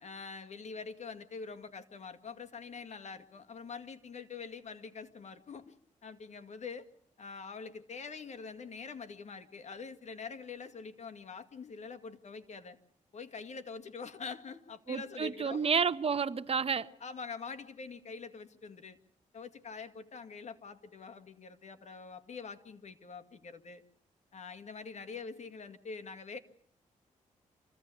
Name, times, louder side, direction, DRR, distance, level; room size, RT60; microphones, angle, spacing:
voice 1, 0.0-5.7 6.0-6.9 7.2-12.8 13.1-15.7 17.0-19.0 19.3-23.8 24.3-26.4, left 5 dB, 60° left, 1.9 m, -45 dB
voice 2, 14.9-16.9, right 6 dB, 45° right, 1.0 m, -30 dB
26.0 x 16.0 x 8.5 m
cardioid pair, 75°, 14 cm